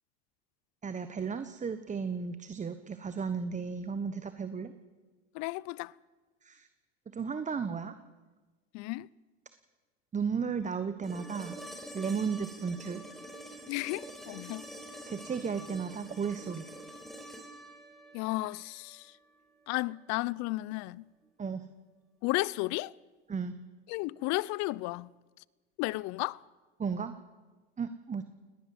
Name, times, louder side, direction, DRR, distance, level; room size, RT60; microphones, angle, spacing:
voice 1, 0.8-4.7 6.4-6.7 7.1-8.0 10.1-11.6 11.9-13.0 15.1-16.7 21.4-21.7 23.3-23.6 26.8-27.1 27.8-28.2, right 6 dB, 25° right, 1.2 m, -34 dB
voice 2, 5.3-5.9 8.7-9.1 13.7-14.7 18.1-19.2 19.7-21.1 22.2-22.9 23.9-25.1 25.8-26.4, left 21 dB, 65° left, 0.6 m, -33 dB
sound 1, 11.0-19.1 21.2-21.3, right 1 dB, ahead, 5.5 m, -47 dB
19.0 x 18.5 x 7.8 m
supercardioid pair, 90°, 31 cm